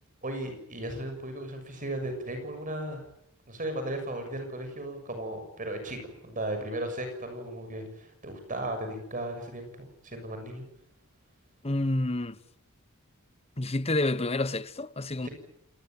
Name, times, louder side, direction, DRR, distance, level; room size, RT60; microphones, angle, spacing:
voice 1, 0.2-3.0 3.5-10.6 15.2-15.3, right 1 dB, 35° right, 6.7 m, -36 dB
voice 2, 11.6-12.4 13.6-15.3, left 2 dB, 30° left, 1.1 m, -29 dB
27.5 x 19.0 x 9.1 m
head